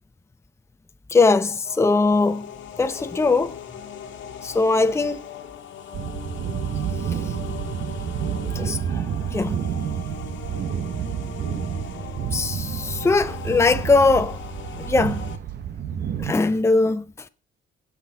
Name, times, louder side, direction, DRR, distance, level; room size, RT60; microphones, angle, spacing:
voice 1, 1.1-2.5 2.8-3.6 4.4-5.2 8.5-9.0 9.3-9.6 12.3-14.4 14.8-15.2 16.2-17.0, left 3 dB, 15° left, 0.7 m, -20 dB
sound 1, 1.6-15.4, left 8 dB, 75° left, 1.7 m, -39 dB
sound 2, 5.9-16.3, right 8 dB, 60° right, 1.1 m, -29 dB
17.5 x 6.1 x 4.2 m
cardioid pair, 90°, 20 cm